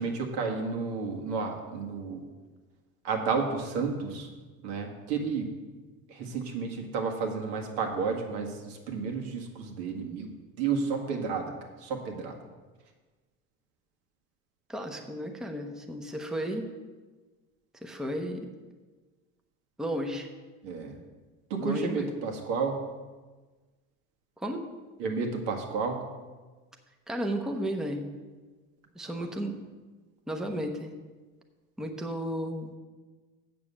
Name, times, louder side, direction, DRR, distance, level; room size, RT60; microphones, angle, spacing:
voice 1, 0.0-2.2 3.0-4.3 4.6-5.5 6.1-10.3 10.6-11.5 11.8-12.4 20.6-21.0 21.5-22.9 25.0-26.0 29.2-29.3, right 5 dB, 90° right, 2 dB, 1.8 m, -31 dB
voice 2, 14.7-16.7 17.8-18.5 19.8-20.3 21.6-22.1 24.4-24.6 27.1-28.1 28.9-29.5 30.3-30.9 31.8-32.7, equal, ahead, 3 dB, 0.6 m, -33 dB
7.6 x 6.9 x 7.1 m, 1.3 s
cardioid pair, 155°, 31 cm